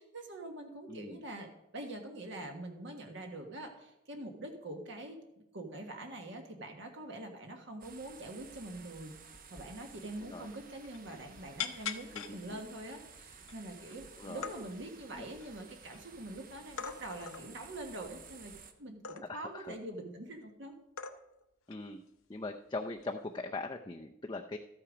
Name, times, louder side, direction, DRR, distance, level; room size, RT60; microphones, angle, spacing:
voice 1, 0.0-9.2 9.5-18.5 18.8-20.8, right 1 dB, 60° right, 3 dB, 1.4 m, -44 dB
voice 2, 0.9-1.2 10.2-10.5 12.1-12.6 14.2-14.5 15.1-15.3 19.3-19.8 21.7-22.0 22.3-24.6, left 2 dB, 20° left, 3 dB, 0.5 m, -41 dB
sound 1, 7.8-18.7, right 5 dB, 40° right, 0.9 m, -54 dB
sound 2, 9.7-9.8 10.1-10.2 10.5-11.0 11.6-12.3 12.9-13.0 13.4-14.0 14.2-14.6 15.1-16.0 16.8-17.5 19.0-19.5 20.4-20.5 21.0-21.4 21.7-21.9 23.0-23.3, left 7 dB, 90° left, 0.9 m, -41 dB
13.0 x 8.7 x 5.0 m, 0.87 s
head